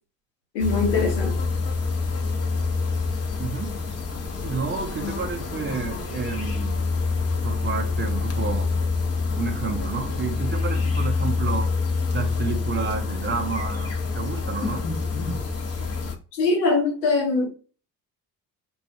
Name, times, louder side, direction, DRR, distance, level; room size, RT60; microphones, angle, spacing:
voice 1, 0.5-1.5 16.3-17.5, left 3 dB, 75° left, 1.0 m, -22 dB
sound 1, 0.6-16.1, left 4 dB, 30° left, 0.9 m, -26 dB
voice 2, 3.4-3.7 4.4-6.7 7.4-8.7 9.3-11.7 12.1-14.9, right 5 dB, 25° right, 0.5 m, -30 dB
2.4 x 2.3 x 2.6 m
hypercardioid pair, 55°, 49 cm